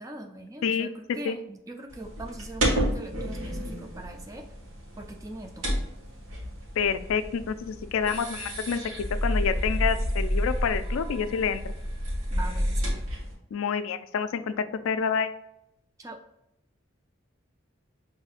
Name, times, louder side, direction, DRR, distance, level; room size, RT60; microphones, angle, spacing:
voice 1, 0.0-4.4 5.0-5.6 12.3-13.0 16.0-16.2, right 2 dB, 15° right, 3 dB, 0.4 m, -41 dB
sound 1, 1.9-13.3, equal, 85° right, 1.2 m, -30 dB
voice 2, 6.8-8.8 9.2-11.7 13.5-15.3, left 6 dB, 80° left, 11 dB, 0.3 m, -28 dB
5.6 x 2.7 x 2.4 m, 0.81 s
head